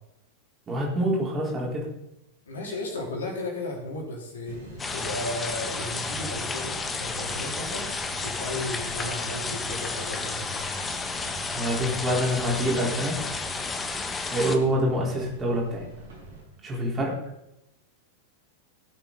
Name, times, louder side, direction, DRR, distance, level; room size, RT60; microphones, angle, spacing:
voice 1, 0.7-1.9 11.5-13.2 14.3-15.9 16.6-17.2, equal, 20° right, -2 dB, 4.0 m, -26 dB
voice 2, 2.5-7.9 8.2-10.7 16.5-16.6, left 2 dB, 70° left, -1 dB, 3.9 m, -35 dB
sound 1, 4.4-16.4, right 2 dB, 60° right, 5.4 m, -43 dB
sound 2, 4.8-14.6, left 4 dB, 15° left, 1.2 m, -32 dB
17.0 x 8.0 x 4.1 m, 0.86 s
figure-of-eight pair, 90°, 0 cm